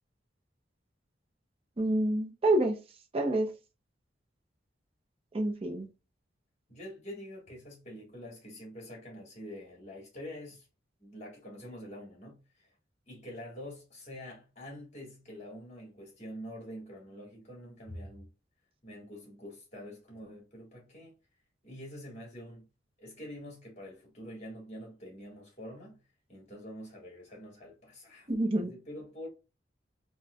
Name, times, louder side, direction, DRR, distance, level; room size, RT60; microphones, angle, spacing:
voice 1, 1.8-2.8 3.1-3.5 5.3-5.9 28.3-28.7, right 1 dB, 30° right, 0.5 m, -27 dB
voice 2, 6.7-10.6 11.0-12.7 13.1-18.3 18.8-21.1 21.6-22.6 23.0-26.0 26.3-29.3, equal, 40° left, 1.6 m, -46 dB
4.1 x 2.1 x 2.3 m
head